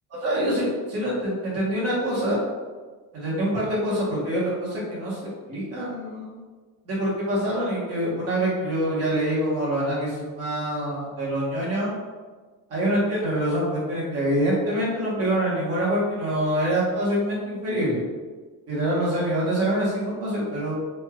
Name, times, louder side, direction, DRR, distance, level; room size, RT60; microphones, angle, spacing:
voice 1, 0.2-2.4 3.1-6.4 6.8-11.9 12.7-18.0 18.7-20.7, right 1 dB, 45° right, -6 dB, 1.1 m, -25 dB
3.2 x 2.6 x 2.3 m, 1.4 s
cardioid pair, 155°, 34 cm